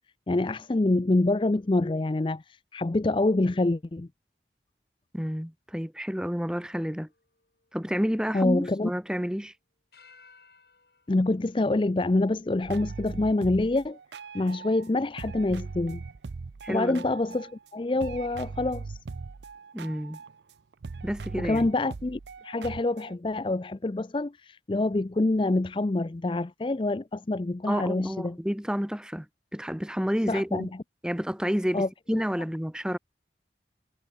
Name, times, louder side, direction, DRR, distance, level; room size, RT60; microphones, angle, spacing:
voice 1, 0.3-2.4 2.7-4.1 8.3-8.9 11.1-14.0 14.3-16.0 16.7-19.0 21.3-28.4 30.3-30.7 31.7-32.2, left 2 dB, 30° left, 0.4 m, -26 dB
voice 2, 5.1-7.1 7.7-9.5 16.6-17.0 19.7-20.2 21.0-21.7 27.7-29.3 29.5-30.7 31.0-33.0, equal, 5° right, 1.3 m, -30 dB
sound 1, 6.4-9.3 9.9-12.7 13.3-13.4 14.3-15.9, left 5 dB, 65° left, 6.3 m, -62 dB
sound 2, 12.6-14.9 15.2-17.7 18.0-23.1, right 4 dB, 80° right, 0.5 m, -40 dB
head